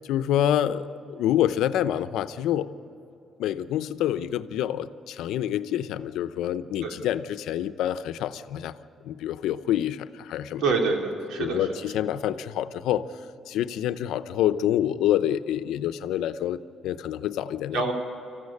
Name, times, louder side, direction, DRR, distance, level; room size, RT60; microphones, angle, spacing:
voice 1, 0.1-2.7 3.4-8.7 9.0-10.6 11.4-13.1 13.5-16.6 16.8-17.8, left 11 dB, 85° left, 12 dB, 0.7 m, -27 dB
voice 2, 10.6-11.7 17.7-17.9, right 4 dB, 80° right, 1 dB, 3.4 m, -26 dB
25.0 x 15.0 x 8.5 m, 3.0 s
cardioid pair, 90°, 0 cm